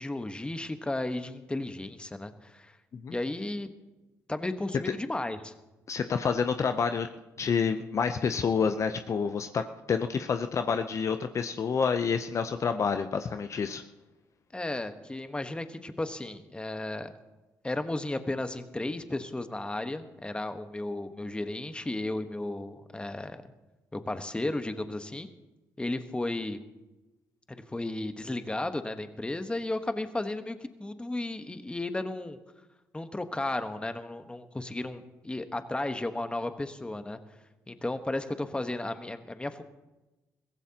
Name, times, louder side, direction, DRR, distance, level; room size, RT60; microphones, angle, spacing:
voice 1, 0.0-2.8 3.1-3.7 4.3-5.5 14.5-17.1 17.6-23.4 23.9-25.3 25.8-26.6 27.5-32.4 32.9-37.2 37.7-39.6, left 2 dB, 15° left, 9 dB, 1.2 m, -34 dB
voice 2, 5.9-7.1 7.4-13.8, left 6 dB, 50° left, 8 dB, 0.7 m, -28 dB
22.5 x 15.5 x 2.9 m, 1.1 s
supercardioid pair, 70°, 7 cm